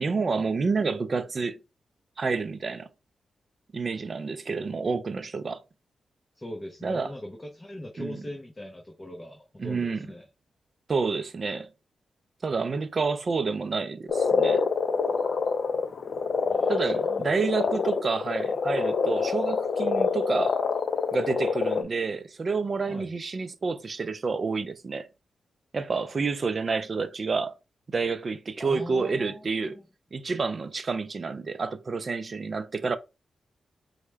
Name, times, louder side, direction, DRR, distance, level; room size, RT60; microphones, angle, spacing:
voice 1, 0.0-1.6 2.2-2.9 3.7-5.6 6.8-7.1 8.0-8.2 9.6-10.1 10.9-11.7 12.4-14.6 16.7-20.6 21.1-25.1 25.7-27.6 27.9-29.8 30.1-33.0, right 4 dB, 40° right, 0.4 m, -29 dB
voice 2, 6.3-10.3 16.5-17.4 22.9-23.1 28.6-29.9, left 1 dB, 20° left, 0.6 m, -41 dB
Frog, 14.1-21.8, left 5 dB, 55° left, 0.4 m, -26 dB
4.4 x 2.1 x 3.3 m
wide cardioid pair, 115°, 0 cm